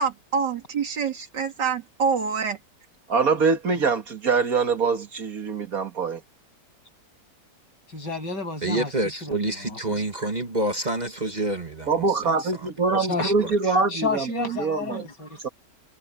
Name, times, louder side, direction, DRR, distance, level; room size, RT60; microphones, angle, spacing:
voice 1, 0.0-2.6, right 5 dB, 80° right, 2.9 m, -26 dB
voice 2, 3.1-6.2 11.9-15.0 15.4-15.5, right 4 dB, 55° right, 2.1 m, -24 dB
voice 3, 7.9-10.0 13.0-13.3 13.9-15.4, left 4 dB, 80° left, 8.5 m, -31 dB
voice 4, 8.6-12.7, right 2 dB, 25° right, 1.8 m, -28 dB
omnidirectional pair, 1.8 m